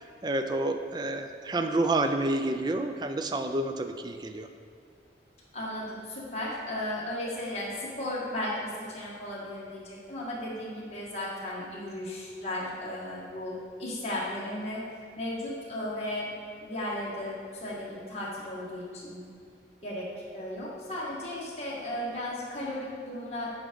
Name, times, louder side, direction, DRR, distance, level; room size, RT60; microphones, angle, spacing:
voice 1, 0.2-4.5, right 2 dB, 25° right, 7 dB, 0.3 m, -29 dB
voice 2, 5.5-14.8 15.1-19.3 19.8-23.5, left 1 dB, 35° left, -6 dB, 1.6 m, -35 dB
8.7 x 3.5 x 5.2 m, 2.3 s
head